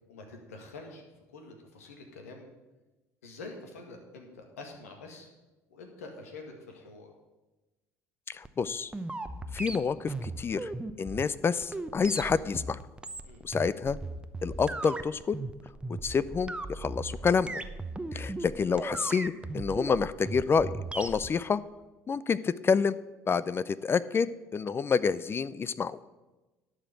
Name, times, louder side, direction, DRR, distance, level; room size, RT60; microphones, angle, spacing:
voice 1, 0.1-1.0 1.3-2.5 3.2-5.3 5.7-7.1 13.2-13.4, left 3 dB, 85° left, 3 dB, 1.8 m, -46 dB
voice 2, 8.3-8.9 9.5-10.7 11.0-12.8 13.4-14.0 14.4-15.4 16.0-17.6 18.1-21.6 22.1-23.0 23.3-26.0, left 5 dB, 30° left, 17 dB, 0.4 m, -28 dB
sound 1, 8.4-21.3, right 2 dB, 15° right, 0.8 m, -37 dB
11.5 x 5.0 x 8.1 m, 1.1 s
hypercardioid pair, 65°, 8 cm